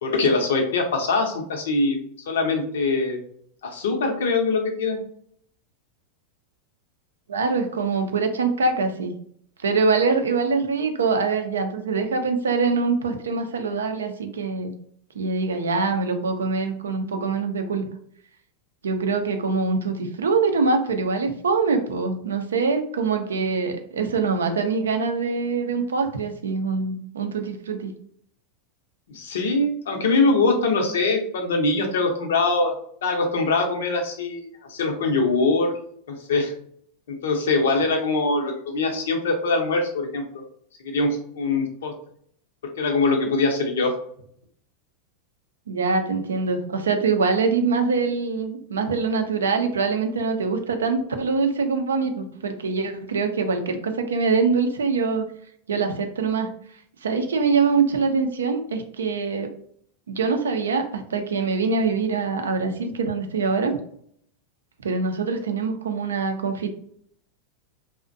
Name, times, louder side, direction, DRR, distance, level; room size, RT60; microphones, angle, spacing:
voice 1, 0.0-2.0 2.3-3.2 3.6-5.0 29.1-32.7 33.0-35.7 36.1-36.5 37.1-40.4 40.8-41.9 42.8-44.0, left 3 dB, 75° left, 3 dB, 0.6 m, -23 dB
voice 2, 7.3-9.1 9.6-14.7 15.1-17.9 18.8-27.9 45.7-55.2 55.7-56.5 57.0-59.5 60.1-63.8 64.8-66.7, right 4 dB, 85° right, 6 dB, 0.4 m, -24 dB
2.4 x 2.1 x 2.5 m, 0.64 s
hypercardioid pair, 95°, 0 cm